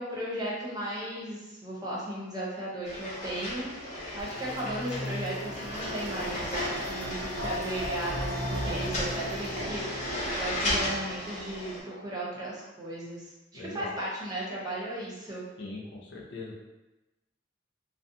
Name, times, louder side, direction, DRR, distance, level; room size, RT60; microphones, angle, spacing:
voice 1, 0.0-6.6 6.9-9.8 10.4-13.2 13.5-15.4, right 1 dB, 20° right, -6 dB, 0.7 m, -36 dB
sound 1, 2.8-11.8, left 1 dB, 40° left, 0.8 m, -34 dB
sound 2, 4.2-10.9, equal, 70° right, 0.5 m, -37 dB
voice 2, 13.5-14.0 15.6-16.6, left 2 dB, 65° left, -2 dB, 0.5 m, -41 dB
2.5 x 2.2 x 2.6 m, 1.0 s
head